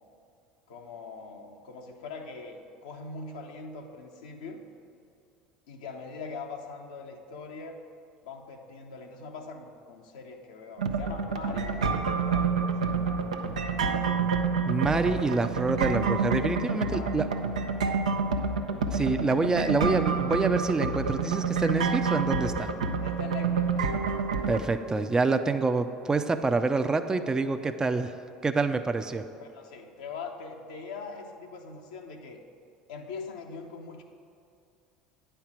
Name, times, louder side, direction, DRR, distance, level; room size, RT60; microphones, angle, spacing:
voice 1, 0.7-4.6 5.7-7.8 8.2-13.2 13.9-14.5 16.5-17.4 23.0-24.1 29.4-32.4 32.9-34.0, left 4 dB, 75° left, 2 dB, 0.8 m, -42 dB
sound 1, 10.8-24.6, right 5 dB, 85° right, 0.5 m, -28 dB
voice 2, 14.6-17.3 18.9-22.7 24.5-28.1 28.4-29.2, right 3 dB, 20° right, 8 dB, 0.4 m, -27 dB
9.4 x 4.5 x 7.3 m, 2.4 s
hypercardioid pair, 70°, 4 cm